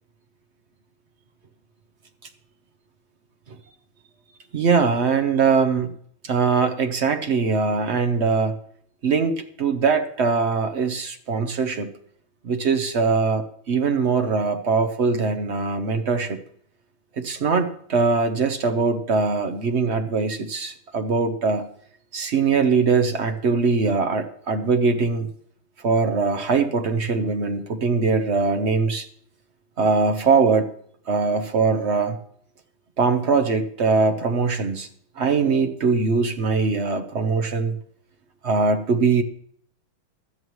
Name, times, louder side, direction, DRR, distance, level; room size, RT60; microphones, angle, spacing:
voice 1, 4.5-5.9 6.2-8.6 9.0-11.9 12.4-16.4 17.2-21.7 22.1-25.3 25.8-29.1 29.8-30.7 31.1-32.2 33.0-34.9 35.2-37.7 38.4-39.2, right 4 dB, 55° right, 7 dB, 0.7 m, -21 dB
16.5 x 12.5 x 3.1 m, 0.64 s
omnidirectional pair, 2.3 m